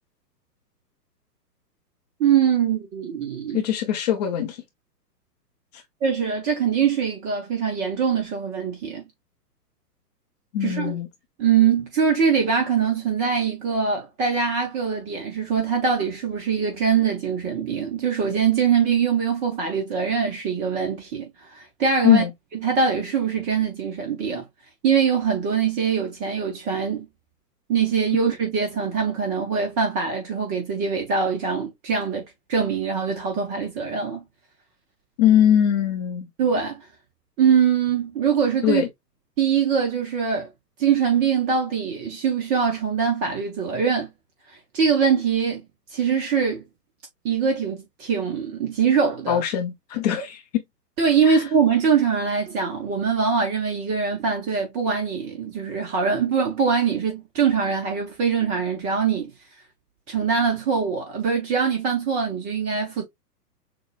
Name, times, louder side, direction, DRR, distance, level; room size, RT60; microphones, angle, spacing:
voice 1, 2.2-3.6 6.0-9.0 10.6-10.9 11.4-22.2 22.6-24.4 24.8-27.1 27.7-32.2 32.5-34.2 36.4-36.8 37.4-38.8 39.4-40.5 40.8-44.1 44.7-45.6 45.9-46.6 47.2-49.4 51.0-59.3 60.1-63.0, right 6 dB, 15° right, 0.6 m, -23 dB
voice 2, 3.5-4.6 5.7-5.8 10.5-11.1 22.0-22.3 35.2-36.3 38.6-38.9 49.3-50.6 51.2-51.4, left 10 dB, 25° left, 0.6 m, -21 dB
6.3 x 2.2 x 2.3 m
figure-of-eight pair, 120°, 49 cm